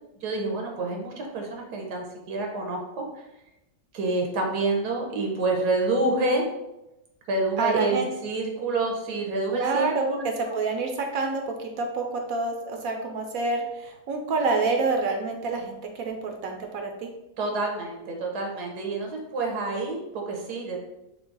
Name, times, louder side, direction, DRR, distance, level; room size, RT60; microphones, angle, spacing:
voice 1, 0.2-3.2 3.9-6.4 7.3-10.2 17.4-20.8, right 2 dB, 85° right, 1 dB, 1.5 m, -28 dB
voice 2, 7.6-8.1 9.5-17.1, right 3 dB, 70° right, 3 dB, 0.9 m, -27 dB
3.8 x 3.1 x 3.9 m, 0.92 s
omnidirectional pair, 1.7 m